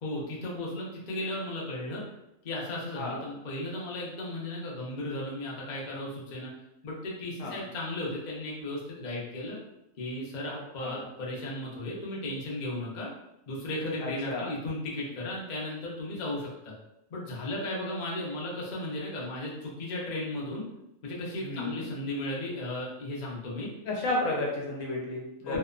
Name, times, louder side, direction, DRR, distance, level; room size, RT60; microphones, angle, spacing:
voice 1, 0.0-2.0 2.4-6.5 6.8-9.6 10.0-13.1 13.5-16.7 17.1-20.6 21.0-23.7 25.5-25.6, left 1 dB, 50° left, -4 dB, 0.6 m, -35 dB
voice 2, 14.0-14.5 21.4-21.8 23.8-25.6, left 2 dB, 70° left, -2 dB, 1.0 m, -32 dB
2.8 x 2.1 x 2.3 m, 0.84 s
omnidirectional pair, 1.4 m